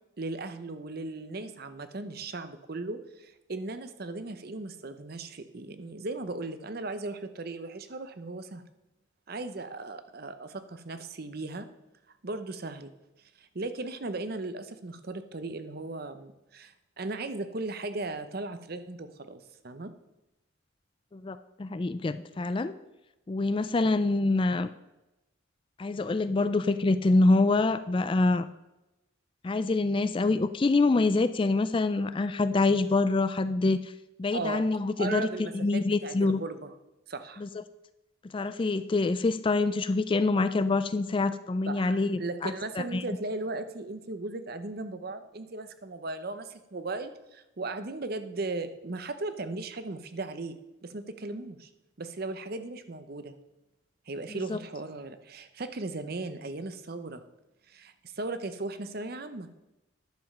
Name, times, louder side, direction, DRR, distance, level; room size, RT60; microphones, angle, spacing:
voice 1, 0.2-8.6 9.3-11.7 12.2-12.9 13.4-19.9 34.3-34.7 35.0-36.7 37.1-37.4 41.7-50.6 50.8-51.7 52.0-53.3 54.1-57.2 57.7-59.5, right 2 dB, 50° right, 10 dB, 0.7 m, -37 dB
voice 2, 21.1-22.7 23.3-24.7 25.8-28.5 29.4-33.9 34.2-36.4 37.4-37.5 38.3-43.0 54.3-54.6, left 3 dB, 25° left, 13 dB, 0.3 m, -26 dB
10.5 x 7.0 x 5.4 m, 0.95 s
head